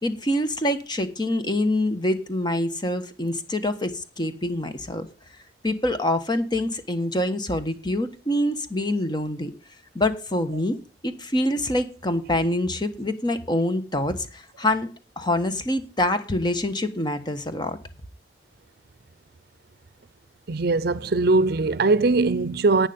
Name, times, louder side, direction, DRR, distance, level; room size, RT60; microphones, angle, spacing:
voice 1, 0.0-5.1 5.6-9.5 9.9-10.8 11.0-14.9 15.2-17.8, left 1 dB, 25° left, 1.3 m, -25 dB
voice 2, 20.5-22.9, right 3 dB, 60° right, 0.6 m, -20 dB
11.0 x 9.1 x 5.2 m
head